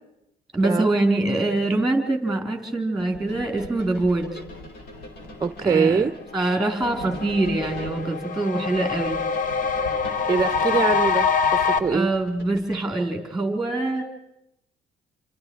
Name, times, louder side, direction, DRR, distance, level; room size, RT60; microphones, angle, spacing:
voice 1, 0.5-4.4 5.6-6.1 6.3-9.2 11.9-14.0, right 2 dB, 5° right, 4 dB, 4.0 m, -24 dB
sound 1, 3.0-13.0, left 2 dB, 70° left, 4.7 m, -41 dB
voice 2, 5.4-6.1 10.3-12.1, right 5 dB, 20° right, 11 dB, 0.8 m, -23 dB
sound 2, 6.0-6.1 6.4-11.8, left 5 dB, 50° left, 1.3 m, -25 dB
28.0 x 25.0 x 4.8 m, 0.86 s
cardioid pair, 110°, 17 cm